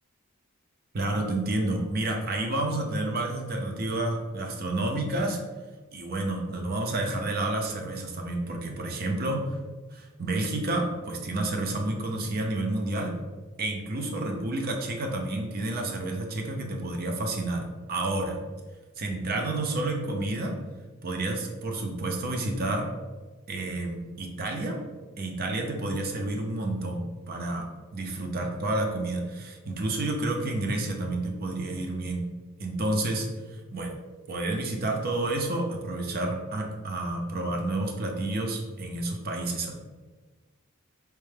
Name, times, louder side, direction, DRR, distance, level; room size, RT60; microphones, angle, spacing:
voice 1, 0.9-5.4 5.9-9.6 9.9-13.2 13.6-18.4 19.0-20.6 21.0-22.9 23.5-24.8 25.2-32.3 32.6-33.9 34.3-39.7, right 2 dB, 45° right, 2 dB, 0.5 m, -30 dB
4.5 x 2.1 x 3.2 m, 1.3 s
head